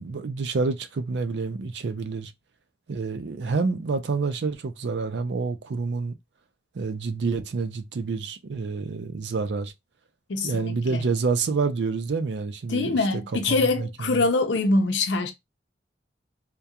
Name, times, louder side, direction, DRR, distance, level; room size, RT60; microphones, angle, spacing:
voice 1, 0.0-2.3 2.9-6.1 6.7-9.7 10.4-13.2 13.5-14.2, right 4 dB, 70° right, 0.4 m, -28 dB
voice 2, 10.3-11.0 12.7-15.3, left 3 dB, 80° left, 0.6 m, -24 dB
2.3 x 2.2 x 2.8 m
head